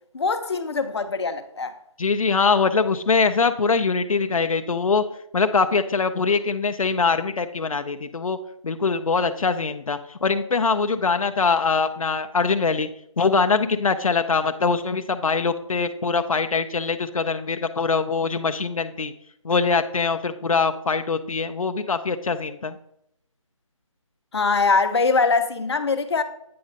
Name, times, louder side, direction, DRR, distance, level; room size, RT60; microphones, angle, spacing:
voice 1, 0.1-1.7 24.3-26.2, left 4 dB, 50° left, 0.7 m, -22 dB
voice 2, 2.0-5.0 5.3-8.4 8.6-12.9 13.2-19.1 19.4-22.8, left 4 dB, 85° left, 0.6 m, -23 dB
8.6 x 5.2 x 3.9 m
figure-of-eight pair, 165°, 17 cm